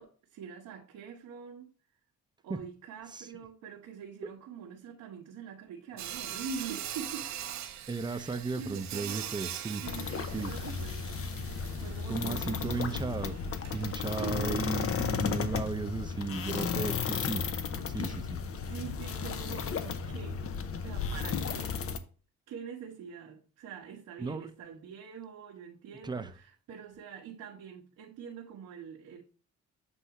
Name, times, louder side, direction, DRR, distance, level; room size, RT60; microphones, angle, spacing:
voice 1, 0.0-1.7 2.4-7.3 8.1-9.3 9.8-13.0 14.2-15.1 18.6-20.4 20.8-21.8 22.5-29.2, right 7 dB, 90° right, 1.2 m, -44 dB
Sawing, 6.0-15.1, right 10 dB, 65° right, 0.8 m, -43 dB
voice 2, 7.9-9.8 10.3-10.5 12.1-13.4 13.7-17.5 17.9-18.4 24.2-24.5 26.0-26.3, right 4 dB, 15° right, 0.7 m, -35 dB
sound 1, 9.8-22.0, left 6 dB, 50° left, 0.8 m, -34 dB
8.1 x 2.7 x 5.7 m
cardioid pair, 90°, 30 cm